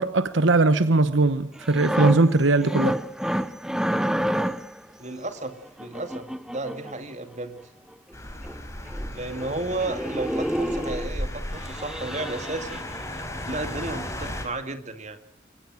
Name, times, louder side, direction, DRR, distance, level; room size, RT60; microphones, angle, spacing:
voice 1, 0.0-3.0, right 2 dB, 75° right, 1.1 m, -20 dB
sound 1, 1.6-4.8 5.8-7.0 8.1-8.2 8.4-8.6 8.9-9.1 9.4-9.6 9.8-11.1 11.6-13.2 13.6-13.8, equal, 5° right, 0.8 m, -29 dB
voice 2, 5.0-7.6 9.1-12.8 13.5-15.2, right 2 dB, 35° right, 2.4 m, -33 dB
sound 2, 8.1-14.4, left 1 dB, 15° left, 4.7 m, -35 dB
23.5 x 19.5 x 6.3 m
head